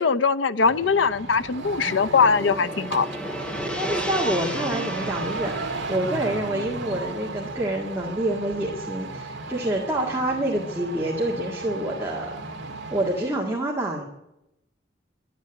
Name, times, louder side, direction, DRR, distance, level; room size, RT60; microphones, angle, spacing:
voice 1, 0.0-3.1, left 5 dB, 75° left, 13 dB, 0.6 m, -21 dB
sound 1, 0.6-13.4, right 2 dB, 75° right, 1.7 m, -34 dB
Gong, 1.3-9.7, equal, 5° left, 0.7 m, -36 dB
voice 2, 3.4-12.3 12.9-14.0, right 1 dB, 15° right, -2 dB, 1.9 m, -27 dB
12.0 x 9.4 x 9.8 m, 0.88 s
head